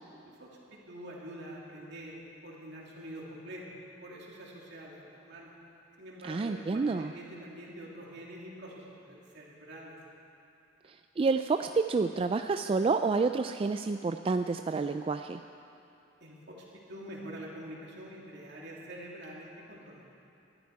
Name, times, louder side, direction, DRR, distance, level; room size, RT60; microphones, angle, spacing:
voice 1, 0.9-3.7 4.0-5.5 6.0-9.9 16.2-20.0, right 1 dB, 65° right, -3 dB, 2.8 m, -45 dB
voice 2, 6.2-7.1 10.9-15.4, right 4 dB, 30° right, 7 dB, 0.3 m, -29 dB
20.0 x 13.0 x 4.8 m, 2.8 s
head